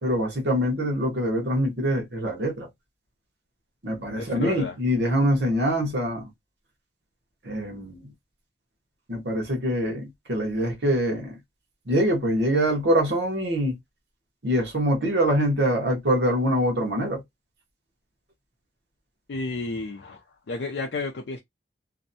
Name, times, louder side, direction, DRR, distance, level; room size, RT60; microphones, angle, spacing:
voice 1, 0.0-2.7 3.8-6.3 7.4-8.1 9.1-11.4 11.9-13.7 14.4-17.2, equal, 65° right, 0.9 m, -24 dB
voice 2, 4.2-4.7 19.3-20.2 20.5-21.4, left 3 dB, 70° left, 0.5 m, -31 dB
2.6 x 2.1 x 2.6 m
head